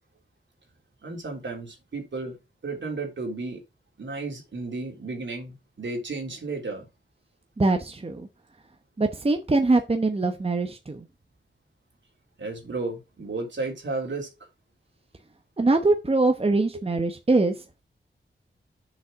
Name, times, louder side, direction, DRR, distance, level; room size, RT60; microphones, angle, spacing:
voice 1, 1.0-2.4 2.6-3.6 4.0-6.9 12.4-14.3, right 3 dB, 70° right, 3.2 m, -33 dB
voice 2, 7.6-8.3 9.0-11.1 15.6-17.5, right 3 dB, 30° right, 0.9 m, -23 dB
6.7 x 5.4 x 4.8 m
wide cardioid pair, 65°, 20 cm